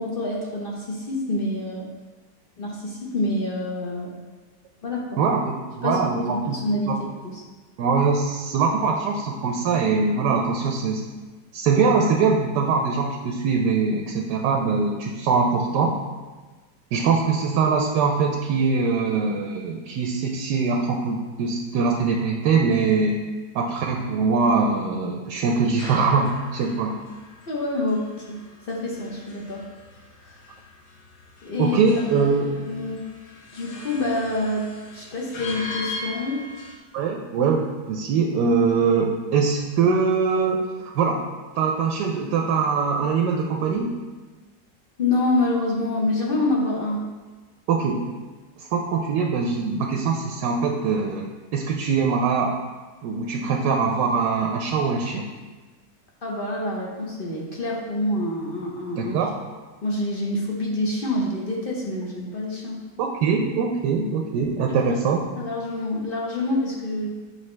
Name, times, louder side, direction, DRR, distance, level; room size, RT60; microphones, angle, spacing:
voice 1, 0.0-1.9 2.6-4.1 4.8-5.2 5.8-6.0 6.5-7.0 7.2-7.4 27.5-28.4 28.6-29.6 30.2-30.4 31.4-31.8 32.2-33.0 33.5-36.4 45.0-47.0 56.2-59.2 59.8-62.8 64.7-64.8 65.4-67.1, left 2 dB, 45° left, -3 dB, 0.7 m, -27 dB
voice 2, 5.2-6.6 6.9-7.0 7.8-11.0 11.5-15.9 16.9-23.2 23.5-26.9 31.6-32.5 36.9-40.6 40.9-41.2 41.6-44.0 47.7-48.1 48.6-52.6 53.0-55.3 59.0-59.3 63.0-65.2, right 5 dB, 85° right, 1 dB, 1.2 m, -22 dB
sound 1, 25.4-36.8, left 2 dB, 80° left, 1.4 m, -40 dB
6.4 x 4.9 x 3.2 m, 1.3 s
omnidirectional pair, 1.8 m